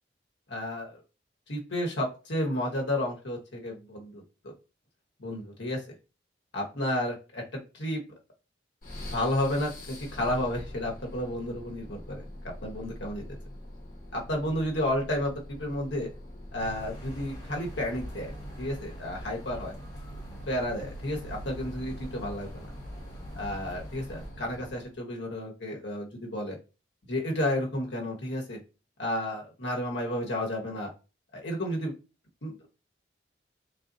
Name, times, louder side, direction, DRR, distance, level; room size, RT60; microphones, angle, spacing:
voice 1, 0.5-1.0 1.5-4.5 5.2-5.8 6.5-7.4 7.7-8.0 9.0-13.2 14.1-16.1 16.5-18.3 18.6-19.7 20.5-22.7 23.3-26.6 27.1-28.6 29.0-30.9 31.3-31.9 32.4-32.8, left 1 dB, 85° left, -1 dB, 1.1 m, -32 dB
sound 1, 8.8-25.0, equal, 50° left, 1.2 m, -45 dB
sound 2, 16.6-24.3, left 1 dB, 20° left, 0.9 m, -44 dB
3.8 x 2.7 x 3.9 m, 0.31 s
head